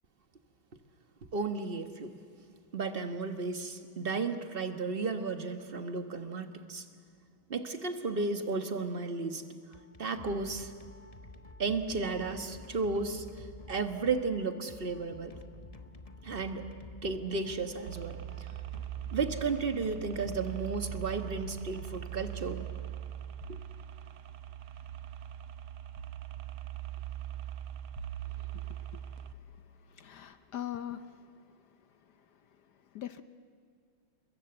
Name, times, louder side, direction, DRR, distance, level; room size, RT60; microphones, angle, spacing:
voice 1, 1.3-2.2 2.7-6.8 7.5-9.4 10.0-10.7 11.6-15.3 16.2-16.7 17.0-18.2 19.1-22.6 23.5-23.6, right 4 dB, 30° right, 7 dB, 1.2 m, -33 dB
sound 1, 9.6-22.8, left 2 dB, 30° left, 0.7 m, -50 dB
sound 2, 17.9-29.3, right 11 dB, 75° right, 1.8 m, -41 dB
voice 2, 28.4-29.1 29.6-31.3 32.9-33.2, left 11 dB, 60° left, 11 dB, 1.2 m, -42 dB
29.5 x 21.5 x 8.0 m, 2.2 s
omnidirectional pair, 2.4 m